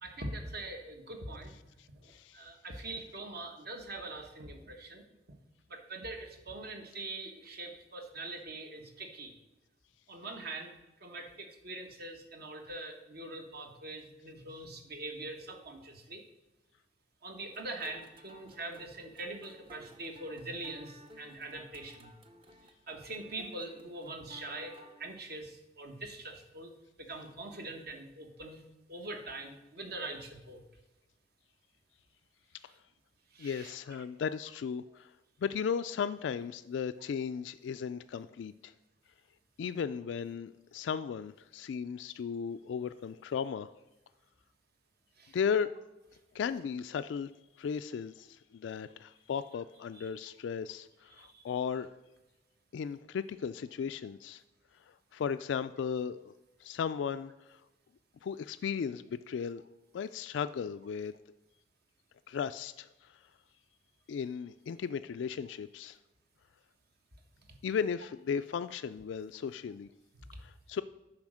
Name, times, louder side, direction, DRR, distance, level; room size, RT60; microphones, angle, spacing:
voice 1, 0.0-1.5 2.0-5.0 5.7-9.3 10.1-10.7 11.0-16.2 17.2-22.1 22.6-26.7 27.0-28.6 28.9-30.6 32.7-32.8 33.3-33.8 45.2-45.4 49.9-50.3 51.2-51.4 51.7-51.9 70.3-70.4, right 2 dB, 60° right, 4 dB, 1.3 m, -43 dB
voice 2, 2.1-2.4 33.4-35.1 35.4-38.7 39.6-43.7 45.3-45.7 46.3-47.3 47.6-51.9 52.7-54.4 55.1-56.3 56.6-57.3 58.2-59.6 59.9-61.1 62.3-62.9 64.1-66.0 67.6-69.9 70.4-70.8, left 6 dB, 80° left, 11 dB, 0.3 m, -35 dB
sound 1, 17.5-25.1, equal, 30° right, 0.7 m, -56 dB
10.5 x 4.9 x 6.3 m, 1.0 s
head